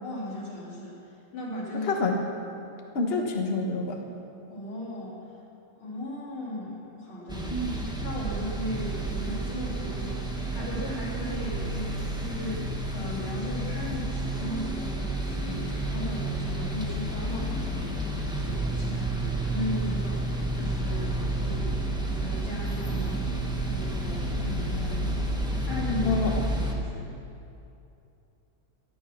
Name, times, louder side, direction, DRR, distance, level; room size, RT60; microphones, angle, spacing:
voice 1, 0.0-1.9 4.5-5.3 5.8-7.7 8.0-25.1 25.7-26.2 26.6-27.2, left 1 dB, 90° left, -6 dB, 4.2 m, -37 dB
voice 2, 1.8-2.2 2.9-4.0 7.5-7.8 26.1-26.3, left 3 dB, 35° left, 2 dB, 1.2 m, -27 dB
sound 1, 7.3-26.7, right 1 dB, 5° right, 1.0 m, -30 dB
16.0 x 11.0 x 5.9 m, 2.7 s
omnidirectional pair, 2.3 m